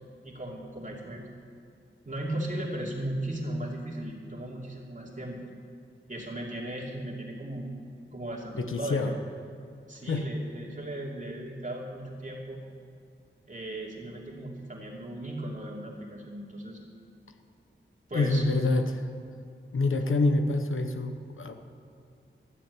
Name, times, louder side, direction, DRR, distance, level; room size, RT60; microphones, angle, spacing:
voice 1, 0.2-1.3 2.1-5.4 6.1-7.7 8.1-9.1 9.9-12.6 13.5-16.8 18.1-18.4 19.9-20.1, right 1 dB, 40° right, -2 dB, 2.7 m, -36 dB
voice 2, 8.5-9.1 10.1-10.2 18.1-19.1 19.7-21.6, left 2 dB, 80° left, 7 dB, 0.9 m, -26 dB
13.0 x 7.5 x 9.4 m, 2.3 s
wide cardioid pair, 75°, 21 cm